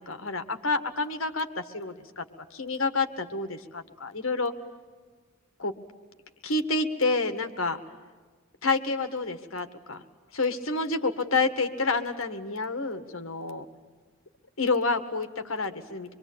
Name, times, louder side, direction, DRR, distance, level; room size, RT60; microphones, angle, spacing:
voice 1, 0.0-2.2 2.5-4.5 5.6-5.7 6.4-7.8 8.6-10.0 10.3-13.6 14.6-16.1, left 3 dB, 70° left, 8 dB, 1.9 m, -29 dB
25.5 x 24.0 x 8.8 m, 1.4 s
head